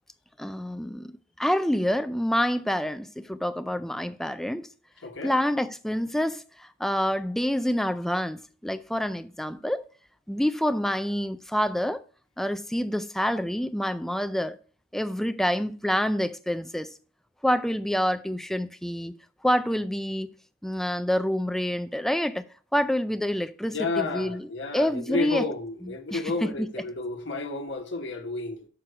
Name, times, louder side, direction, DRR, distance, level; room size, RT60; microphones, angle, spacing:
voice 1, 0.4-4.7 5.2-9.8 10.3-12.0 12.4-14.6 14.9-16.9 17.4-19.1 19.4-20.3 20.6-22.5 22.7-25.5 25.8-26.7, equal, ahead, 0.3 m, -27 dB
voice 2, 5.0-5.3 23.7-28.7, left 3 dB, 60° left, 1.1 m, -31 dB
6.5 x 6.0 x 4.6 m
head